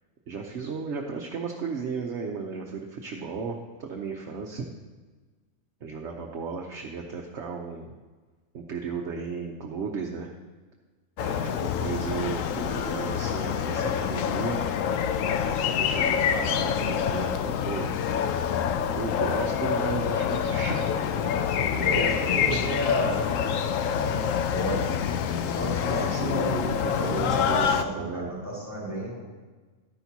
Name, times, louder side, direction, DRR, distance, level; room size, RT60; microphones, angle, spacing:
voice 1, 0.3-4.7 5.8-7.9 8.5-10.3 11.2-14.6 15.5-17.9 18.9-22.6 23.3-23.6 25.8-28.3, right 5 dB, 65° right, 0 dB, 1.1 m, -35 dB
sound 1, 11.2-27.8, left 8 dB, 80° left, 1.0 m, -26 dB
voice 2, 21.8-23.7 23.9-29.2, equal, 10° left, -6 dB, 3.8 m, -32 dB
12.5 x 10.5 x 2.8 m, 1.3 s
omnidirectional pair, 1.4 m